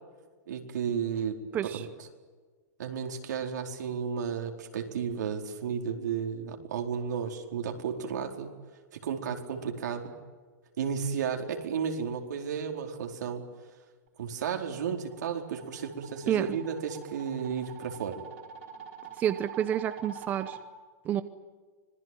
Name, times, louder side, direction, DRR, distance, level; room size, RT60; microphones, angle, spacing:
voice 1, 0.5-1.4 1.6-2.1 2.8-8.5 8.9-10.1 10.8-13.4 14.2-18.2, right 7 dB, 75° right, 3 dB, 4.5 m, -33 dB
sound 1, 14.7-20.6, right 7 dB, 45° right, 4.5 m, -46 dB
voice 2, 19.2-20.6 21.0-21.2, right 10 dB, 20° right, 12 dB, 0.8 m, -29 dB
26.0 x 20.5 x 9.4 m, 1.4 s
supercardioid pair, 165°, 9 cm